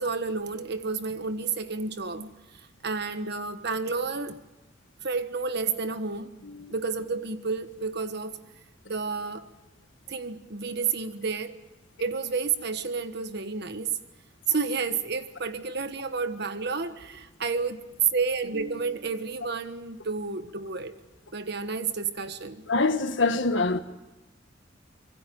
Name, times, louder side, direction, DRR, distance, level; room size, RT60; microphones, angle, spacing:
voice 1, 0.0-2.3 2.8-4.4 5.0-6.3 6.7-8.4 8.8-9.5 10.1-11.5 12.0-14.0 14.5-17.8 18.1-20.9 21.3-22.6, right 4 dB, 60° right, 1.4 m, -30 dB
voice 2, 6.4-6.7 22.7-23.8, left 3 dB, 75° left, 1.5 m, -25 dB
25.5 x 24.0 x 5.4 m
head